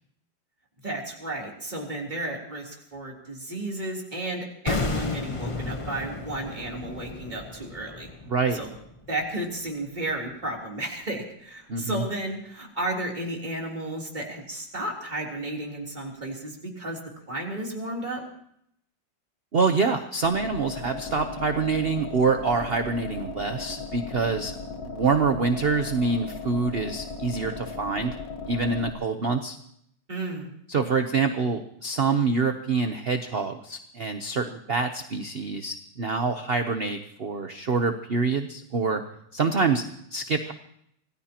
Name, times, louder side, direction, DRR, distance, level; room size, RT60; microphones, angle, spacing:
voice 1, 0.8-8.1 8.5-8.7 9.1-17.0 17.3-18.2 30.1-30.5, right 1 dB, 25° right, -2 dB, 3.6 m, -33 dB
sound 1, 4.7-9.7 9.9-10.1, left 3 dB, 25° left, 0.8 m, -33 dB
voice 2, 8.3-8.6 11.7-12.0 19.5-24.5 24.8-28.1 28.5-29.6 30.7-39.0 39.3-39.8 40.1-40.5, right 4 dB, 45° right, 7 dB, 0.9 m, -26 dB
sound 2, 20.2-28.9, left 4 dB, 50° left, 1.9 m, -37 dB
26.0 x 18.5 x 3.0 m, 0.71 s
omnidirectional pair, 2.0 m